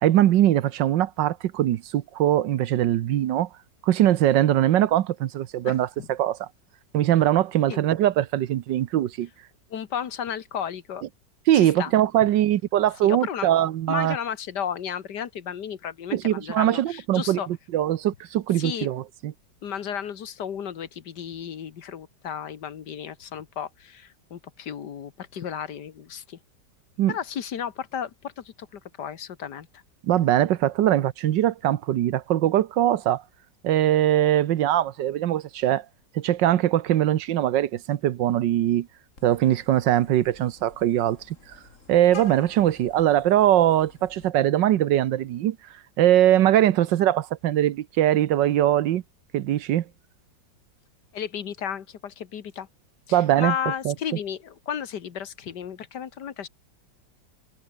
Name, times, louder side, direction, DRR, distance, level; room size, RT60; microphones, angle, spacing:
voice 1, 0.0-3.5 3.8-6.5 6.9-9.3 11.5-14.2 16.1-19.3 27.0-27.1 30.0-33.2 33.6-35.8 36.1-38.9 39.2-41.4 41.9-45.6 46.0-49.0 49.3-49.8 53.1-53.5 53.8-53.9, right 12 dB, 80° right, 1.5 m, -21 dB
voice 2, 5.6-6.1 7.7-7.8 9.7-11.0 11.5-11.9 13.0-13.5 13.9-17.5 18.6-18.9 19.6-26.4 27.1-29.8 51.1-52.7 53.1-56.5, left 8 dB, 70° left, 1.9 m, -33 dB
Vehicle horn car horn honking, 39.2-44.3, left 4 dB, 45° left, 2.7 m, -48 dB
omnidirectional pair, 1.9 m